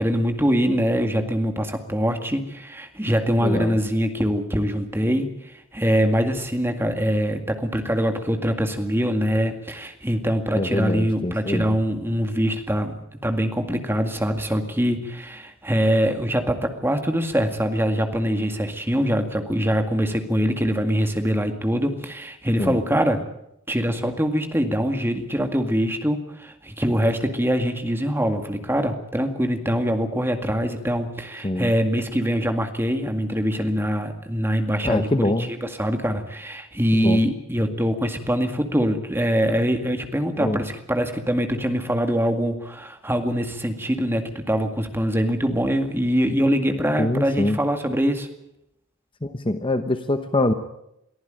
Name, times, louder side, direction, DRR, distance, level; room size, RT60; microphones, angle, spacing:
voice 1, 0.0-13.0 13.2-23.2 23.7-48.3, equal, 10° right, 6 dB, 2.1 m, -23 dB
voice 2, 3.4-3.7 10.5-11.7 22.6-22.8 31.4-31.7 34.8-35.5 37.0-37.2 40.4-40.6 47.0-47.6 49.2-50.5, left 1 dB, 25° left, 9 dB, 1.0 m, -24 dB
23.0 x 14.5 x 9.1 m, 0.82 s
head